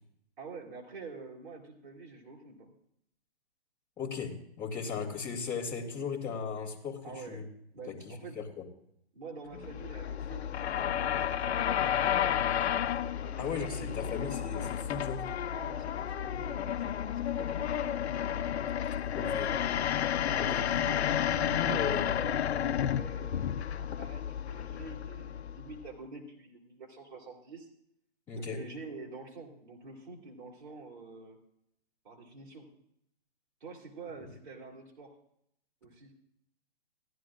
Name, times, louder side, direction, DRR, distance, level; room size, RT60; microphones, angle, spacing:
voice 1, 0.4-2.7 7.0-8.4 9.1-12.3 13.0-14.4 15.5-18.0 20.2-27.7 28.4-31.4 32.0-32.7 33.6-35.2 35.8-36.1, right 4 dB, 45° right, -3 dB, 2.6 m, -47 dB
voice 2, 4.0-7.0 7.3-7.4 7.9-8.4 13.4-15.3 19.1-19.5 20.4-20.8 21.4-22.2 28.3-28.6, left 5 dB, 5° left, -9 dB, 2.2 m, -37 dB
sound 1, 9.5-25.9, left 9 dB, 80° left, 0.6 m, -32 dB
17.5 x 11.5 x 2.4 m, 0.72 s
hypercardioid pair, 170°, 33 cm